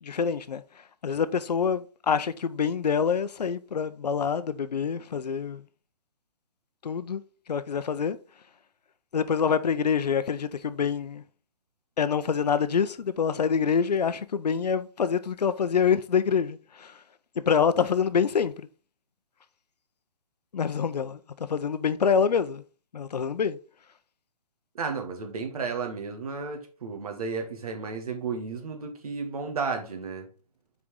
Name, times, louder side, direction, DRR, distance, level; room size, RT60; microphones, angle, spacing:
voice 1, 0.0-5.6 6.8-7.2 7.5-8.2 9.1-11.2 12.0-17.0 17.5-18.7 20.5-22.6 22.9-23.6, left 6 dB, 80° left, 0.7 m, -26 dB
voice 2, 24.8-30.3, right 5 dB, 65° right, 2.0 m, -33 dB
6.2 x 4.7 x 3.7 m
hypercardioid pair, 155°, 21 cm